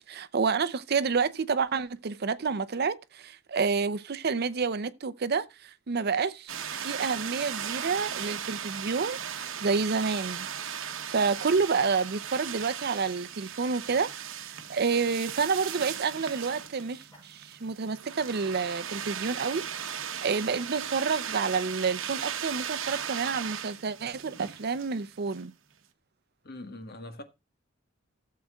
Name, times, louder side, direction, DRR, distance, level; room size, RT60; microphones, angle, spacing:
voice 1, 0.1-10.5 11.1-14.1 14.4-25.5, right 5 dB, 50° right, 0.6 m, -29 dB
sound 1, 6.5-25.4, right 8 dB, 75° right, 1.0 m, -37 dB
Fire, 15.2-16.7 17.1-17.6 18.5-18.6 19.1-19.2 19.8-20.4 20.9-21.0, equal, 20° left, 6.3 m, -58 dB
voice 2, 26.4-27.2, left 1 dB, 50° left, 1.5 m, -42 dB
16.0 x 7.5 x 2.3 m
head